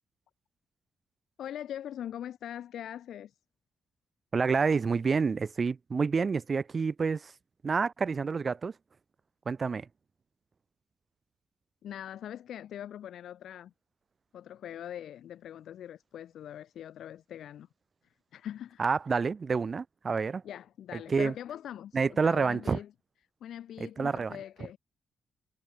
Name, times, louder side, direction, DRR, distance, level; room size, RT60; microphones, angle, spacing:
voice 1, 1.4-3.3 11.8-13.7 14.3-17.7 18.3-18.8 20.4-22.9 23.4-24.8, left 10 dB, 80° left, 3.6 m, -42 dB
voice 2, 4.3-7.3 7.6-8.7 9.5-9.9 18.8-20.4 20.9-21.3 21.9-22.8 23.8-24.4, right 5 dB, 40° right, 0.4 m, -28 dB
cardioid pair, 95°, 0 cm